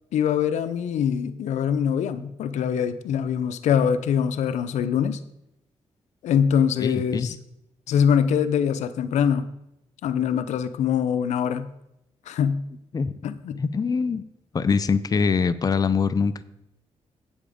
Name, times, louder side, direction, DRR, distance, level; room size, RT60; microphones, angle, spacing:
voice 1, 0.1-5.2 6.2-7.4 7.9-9.5 10.0-11.7 12.3-12.6 13.2-13.6, left 8 dB, 90° left, 13 dB, 0.5 m, -23 dB
voice 2, 6.8-7.3 12.9-13.1 13.6-14.2 14.5-16.4, left 5 dB, 35° left, 13 dB, 0.5 m, -23 dB
8.6 x 7.2 x 5.0 m, 0.83 s
cardioid pair, 75°, 12 cm